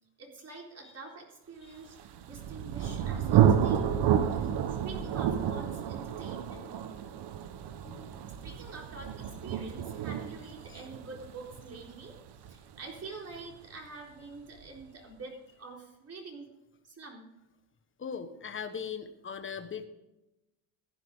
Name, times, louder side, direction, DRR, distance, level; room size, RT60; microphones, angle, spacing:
voice 1, 0.2-6.7 8.4-16.5 16.8-17.3, right 3 dB, 30° right, 0 dB, 4.1 m, -46 dB
Thunder, 2.0-13.5, right 9 dB, 50° right, 1.1 m, -30 dB
voice 2, 7.8-8.2 18.0-19.9, left 6 dB, 25° left, 8 dB, 1.3 m, -39 dB
15.0 x 10.5 x 3.7 m, 0.93 s
cardioid pair, 115°, 49 cm